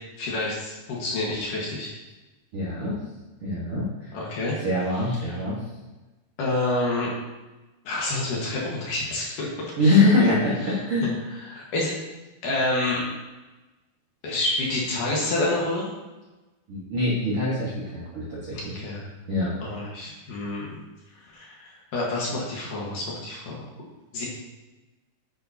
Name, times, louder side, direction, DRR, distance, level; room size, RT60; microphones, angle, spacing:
voice 1, 0.2-2.0 4.1-4.6 5.2-5.4 6.4-7.1 7.8-10.3 10.6-10.7 11.4-12.0 12.4-13.0 14.2-15.9 18.5-19.1 19.6-20.7 21.1-23.6 24.1-24.3, left 2 dB, 60° left, -3 dB, 2.6 m, -28 dB
voice 2, 2.5-3.0 3.4-4.1 4.6-5.6 9.8-10.5 10.8-11.1 16.7-18.6 19.3-19.5, left 2 dB, 55° right, -8 dB, 1.5 m, -23 dB
9.9 x 8.6 x 2.8 m, 1.1 s
omnidirectional pair, 4.8 m